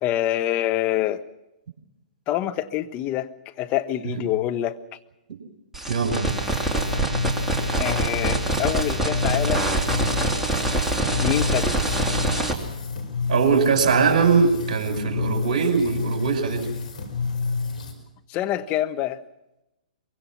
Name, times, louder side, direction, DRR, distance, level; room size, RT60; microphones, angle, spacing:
voice 1, 0.0-1.2 2.3-3.3 3.6-4.8 7.8-9.7 11.2-11.8 18.3-19.2, left 13 dB, 30° left, 1.2 m, -26 dB
sound 1, 5.7-12.5, right 2 dB, 5° right, 3.1 m, -25 dB
voice 2, 5.9-6.3 13.3-16.7, right 5 dB, 50° right, 5.2 m, -21 dB
sound 2, 6.3-17.9, left 4 dB, 65° left, 4.9 m, -29 dB
24.0 x 23.0 x 6.1 m
figure-of-eight pair, 120°, 5 cm